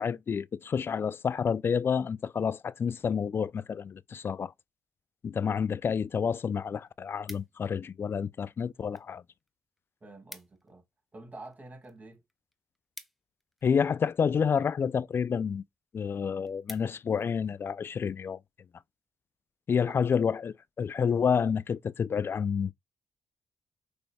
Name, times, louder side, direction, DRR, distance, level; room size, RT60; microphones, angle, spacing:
voice 1, 0.0-4.5 5.2-9.2 13.6-15.6 15.9-18.4 19.7-22.7, left 6 dB, 45° left, 0.4 m, -29 dB
sound 1, 6.1-6.2 6.5-7.9 8.6-9.1 9.4-9.5 9.8-9.9 10.1-10.7 11.1-13.9 14.6-15.0 15.5-15.6 15.9-16.0 16.3-17.3 17.8-18.0, equal, ahead, 0.9 m, -50 dB
voice 2, 10.0-10.8 11.1-12.2 19.8-19.9, right 2 dB, 30° right, 2.2 m, -48 dB
6.1 x 3.3 x 2.3 m
supercardioid pair, 55°, 5 cm